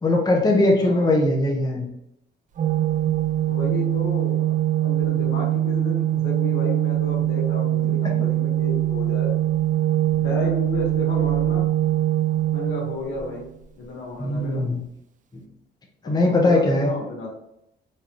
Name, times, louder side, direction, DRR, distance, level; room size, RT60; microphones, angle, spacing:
voice 1, 0.0-1.9 8.0-8.1 14.2-14.8 16.0-16.9, left 2 dB, 20° left, 0 dB, 0.8 m, -20 dB
voice 2, 0.8-1.2 3.5-4.5 4.8-9.3 10.2-11.7 12.5-13.4 13.7-14.7 16.0-17.3, left 1 dB, 80° left, -2 dB, 1.3 m, -32 dB
Organ, 2.6-13.5, right 13 dB, 40° right, 0.4 m, -22 dB
3.9 x 3.1 x 2.9 m, 0.82 s
cardioid pair, 90°, 20 cm